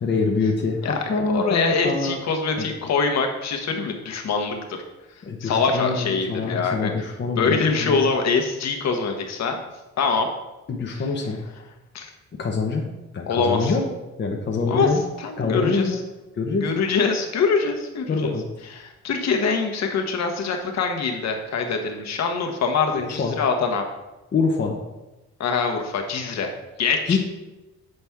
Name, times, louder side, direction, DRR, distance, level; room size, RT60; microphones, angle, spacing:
voice 1, 0.0-2.2 2.6-2.7 5.2-8.0 10.7-11.4 12.4-12.8 13.1-13.8 14.2-15.0 15.4-16.0 16.3-16.7 18.1-18.5 22.9-23.4 24.3-24.8 27.1-27.2, left 4 dB, 35° left, 0 dB, 0.9 m, -25 dB
voice 2, 1.3-4.5 5.4-6.9 7.4-9.6 10.0-10.3 11.9-12.1 13.3-13.7 14.6-14.9 15.2-16.0 16.6-18.3 18.8-23.8 25.4-26.5 26.8-27.2, left 5 dB, 60° left, 3 dB, 1.1 m, -24 dB
7.8 x 4.2 x 3.5 m, 1.1 s
cardioid pair, 90°, 30 cm